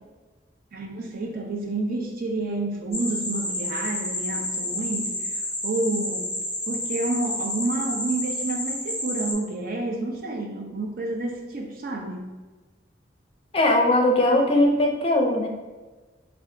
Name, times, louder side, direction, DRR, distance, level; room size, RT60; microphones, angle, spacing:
voice 1, 0.7-5.1 5.6-6.4 6.7-12.3, right 2 dB, 50° right, 1 dB, 0.6 m, -29 dB
sound 1, 2.9-9.3, left 1 dB, 20° right, 1.5 m, -30 dB
voice 2, 13.5-15.5, left 1 dB, 30° left, 2 dB, 0.5 m, -20 dB
3.3 x 2.4 x 3.7 m, 1.3 s
head